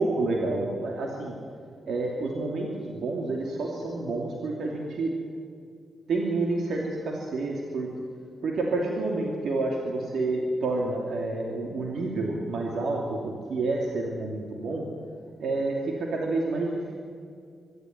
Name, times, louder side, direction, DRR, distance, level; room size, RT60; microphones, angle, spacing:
voice 1, 0.0-1.4 1.9-5.1 6.1-8.0 8.4-14.9 15.4-16.9, right 2 dB, 70° right, -1 dB, 2.8 m, -29 dB
24.0 x 12.5 x 9.6 m, 2.2 s
cardioid pair, 115°, 0 cm